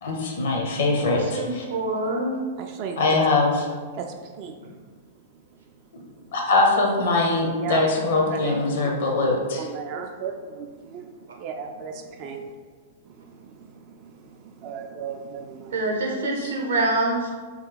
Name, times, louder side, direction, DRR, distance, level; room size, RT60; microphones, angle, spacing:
voice 1, 0.0-1.6 3.0-3.7 6.3-9.7 16.4-16.5, left 3 dB, 55° left, 0 dB, 0.7 m, -22 dB
voice 2, 1.2-2.4 7.9-8.6 15.7-17.3, right 2 dB, 65° right, 0 dB, 0.7 m, -26 dB
voice 3, 2.6-3.0 4.0-4.1 4.4-4.6 7.6-7.8 8.3-8.6 9.6-11.1 11.4-12.4 13.1-15.8, right 7 dB, 40° right, 3 dB, 0.3 m, -36 dB
3.0 x 2.2 x 3.9 m, 1.5 s
figure-of-eight pair, 100°, 0 cm